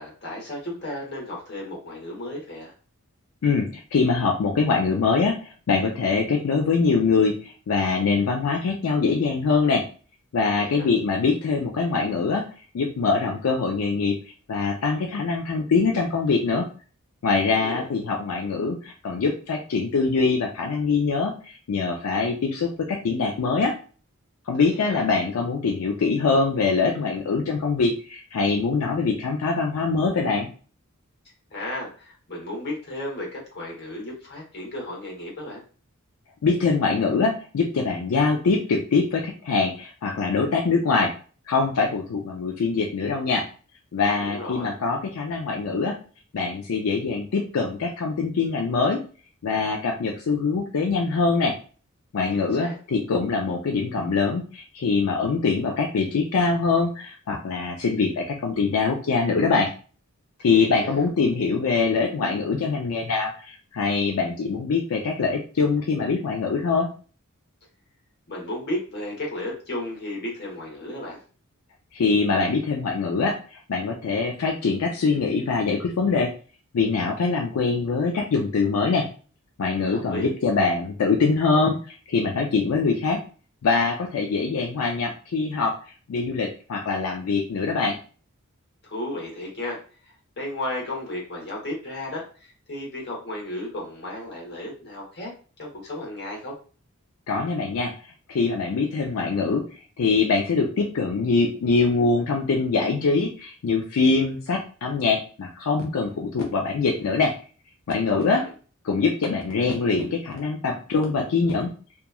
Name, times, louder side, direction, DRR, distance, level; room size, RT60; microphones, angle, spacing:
voice 1, 0.0-2.7 10.6-10.9 17.5-17.9 24.9-25.0 31.5-35.6 44.2-44.7 52.3-52.8 60.5-61.1 68.3-71.2 79.9-80.3 88.8-89.8 90.4-95.3 95.6-96.5 108.1-108.5, left 1 dB, 50° left, -1 dB, 1.1 m, -34 dB
voice 2, 3.4-9.8 10.3-12.4 12.7-14.2 14.5-16.7 17.2-23.7 24.5-30.5 36.4-41.1 41.5-43.4 43.9-45.9 46.3-49.0 49.4-51.5 52.1-59.7 60.4-66.9 71.9-76.3 76.7-79.1 79.6-83.2 83.6-85.7 86.1-88.0 97.3-97.9 98.3-99.6 100.0-107.3 107.9-108.4 108.8-111.7, left 4 dB, 80° left, 1 dB, 0.4 m, -23 dB
2.9 x 2.2 x 2.3 m, 0.39 s
head